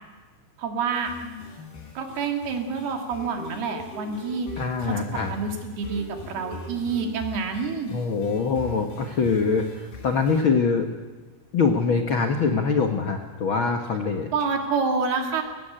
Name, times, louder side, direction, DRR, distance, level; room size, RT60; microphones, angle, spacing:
voice 1, 0.6-1.1 2.0-7.9 14.3-15.4, right 5 dB, 80° right, 4 dB, 4.3 m, -28 dB
sound 1, 0.9-10.4, left 3 dB, 85° left, 5.6 m, -41 dB
voice 2, 4.6-5.4 7.9-10.9 11.5-14.3, left 5 dB, 70° left, 5 dB, 1.2 m, -24 dB
22.0 x 18.0 x 8.8 m, 1.3 s
omnidirectional pair, 4.4 m